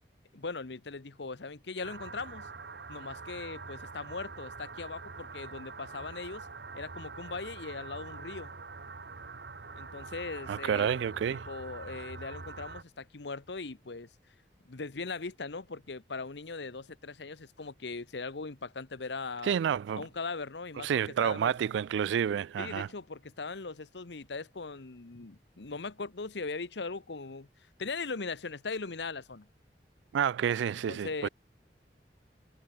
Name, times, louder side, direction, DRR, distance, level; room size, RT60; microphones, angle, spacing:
voice 1, 0.3-2.5 2.9-6.5 6.7-8.5 9.8-14.1 14.7-19.6 20.0-20.9 21.2-21.5 22.6-27.5 27.8-29.5 30.9-31.3, left 4 dB, 75° left, 1.0 m, -39 dB
sound 1, 1.8-12.8, right 4 dB, 65° right, 1.2 m, -45 dB
voice 2, 10.5-11.5 19.4-20.0 20.8-22.9 30.1-31.3, right 8 dB, 80° right, 0.3 m, -29 dB
head